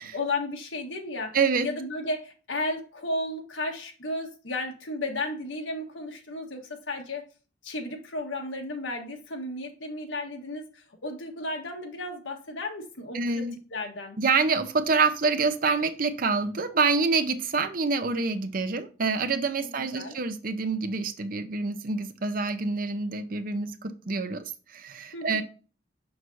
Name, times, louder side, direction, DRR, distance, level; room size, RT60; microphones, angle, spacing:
voice 1, 0.1-1.4 1.6-7.2 7.6-14.2 19.6-20.1 25.1-25.4, left 2 dB, 85° left, 2 dB, 1.4 m, -34 dB
voice 2, 1.3-1.7 13.1-13.5 14.2-25.4, right 4 dB, 50° right, 9 dB, 0.7 m, -26 dB
6.2 x 6.0 x 2.7 m, 0.36 s
head